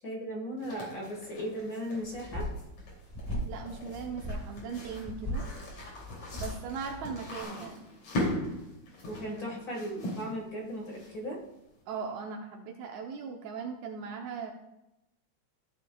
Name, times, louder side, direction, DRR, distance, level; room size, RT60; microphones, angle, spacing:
voice 1, 0.0-2.5 9.1-11.4, equal, 35° left, -2 dB, 1.8 m, -37 dB
sound 1, 0.6-11.4, left 1 dB, 70° left, 4.0 m, -40 dB
sound 2, 2.0-7.4, equal, 10° left, 1.3 m, -39 dB
voice 2, 3.5-5.5 6.3-7.9 11.9-14.5, right 5 dB, 80° right, 2 dB, 2.1 m, -39 dB
14.0 x 7.4 x 2.3 m, 0.91 s
omnidirectional pair, 3.3 m